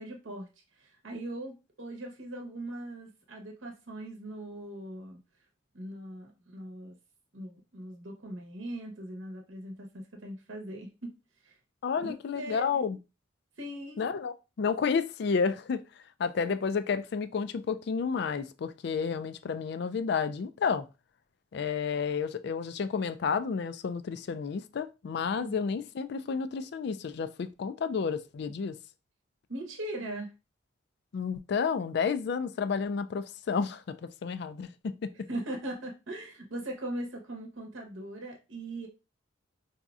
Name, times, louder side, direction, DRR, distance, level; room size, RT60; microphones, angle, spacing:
voice 1, 0.0-5.2 5.7-7.0 7.3-11.1 11.4-11.6 12.0-12.8 13.6-14.1 25.4-25.6 29.5-30.3 35.3-38.9, right 1 dB, 80° right, 0.8 m, -40 dB
voice 2, 11.8-13.0 14.0-20.9 21.5-28.8 31.1-35.3, left 5 dB, 55° left, 0.3 m, -31 dB
4.9 x 2.7 x 2.3 m
head